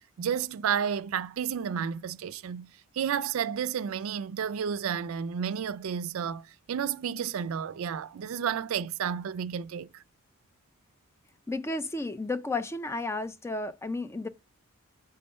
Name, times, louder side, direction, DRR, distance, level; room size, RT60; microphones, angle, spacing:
voice 1, 0.2-10.0, right 8 dB, 65° right, 0.4 m, -31 dB
voice 2, 11.5-14.3, left 2 dB, 10° left, 0.3 m, -32 dB
5.3 x 3.7 x 5.4 m
head